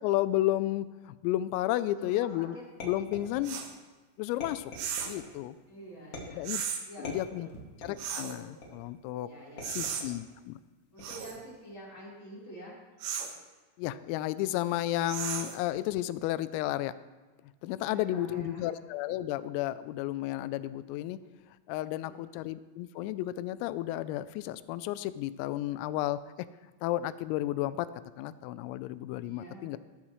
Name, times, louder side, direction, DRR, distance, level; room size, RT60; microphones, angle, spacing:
voice 1, 0.0-2.6 2.8-3.6 4.2-4.7 5.0-5.6 6.3-6.6 7.0-7.5 7.8-9.3 9.7-10.6 13.8-16.9 17.6-21.2 21.7-26.2 26.8-27.9 28.2-29.8, left 14 dB, 90° left, 14 dB, 3.3 m, -32 dB
voice 2, 1.9-2.5 5.7-6.5 6.8-7.5 9.2-9.9 10.9-12.7 17.8-18.7 21.9-22.4 29.2-29.7, right 1 dB, 25° left, -6 dB, 4.2 m, -47 dB
sound 1, 2.8-3.7 4.4-5.3 6.1-6.6 7.0-8.1 8.6-9.0 9.6-10.2 11.0-11.4, left 1 dB, 45° left, 2.0 m, -44 dB
sound 2, 3.4-3.7 4.7-5.2 6.4-6.8 8.0-8.4 9.6-10.0 11.0-11.4 13.0-13.3 15.1-15.6, right 8 dB, 70° right, 3.0 m, -35 dB
17.5 x 13.0 x 3.2 m, 1.3 s
omnidirectional pair, 5.9 m